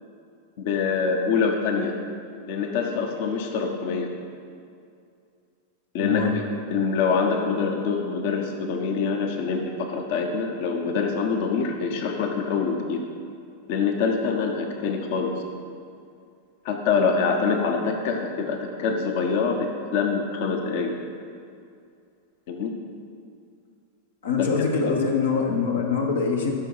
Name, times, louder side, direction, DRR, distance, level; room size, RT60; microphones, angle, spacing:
voice 1, 0.6-1.9 2.5-4.1 5.9-6.2 6.7-13.0 13.7-15.4 16.6-20.9 22.5-22.7 24.4-24.7, left 5 dB, 50° left, 3 dB, 1.0 m, -25 dB
voice 2, 6.0-6.4 24.2-26.5, left 5 dB, 70° left, 1 dB, 1.2 m, -24 dB
12.5 x 6.2 x 4.7 m, 2.4 s
figure-of-eight pair, 90°, 0 cm